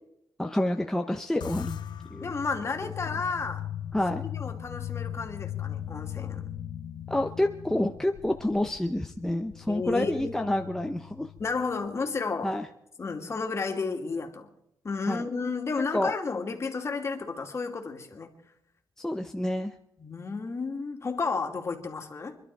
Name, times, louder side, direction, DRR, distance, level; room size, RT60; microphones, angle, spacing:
voice 1, 0.4-1.8 2.1-2.4 3.9-4.2 7.1-11.3 12.4-12.6 15.1-15.3 15.9-16.1 19.0-19.7, left 1 dB, 5° left, 4 dB, 0.9 m, -28 dB
sound 1, 1.4-12.0, left 11 dB, 80° left, 0.7 m, -39 dB
voice 2, 2.2-3.7 4.1-6.5 9.7-10.3 11.4-12.5 13.0-14.5 14.8-18.3 20.0-22.4, left 4 dB, 40° left, 3 dB, 2.5 m, -32 dB
25.5 x 11.5 x 4.7 m, 0.79 s
cardioid pair, 105°, 7 cm